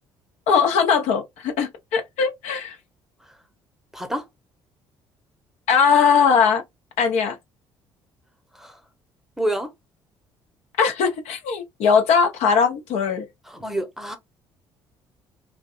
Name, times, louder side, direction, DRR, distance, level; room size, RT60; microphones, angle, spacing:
voice 1, 0.5-2.8 5.7-6.6 7.0-7.3 10.8-13.2, left 6 dB, 65° left, 0.6 m, -20 dB
voice 2, 3.9-4.3 8.5-8.8 9.4-9.7 13.5-14.2, right 1 dB, 5° right, 0.8 m, -28 dB
2.5 x 2.2 x 2.3 m
hypercardioid pair, 55°, 12 cm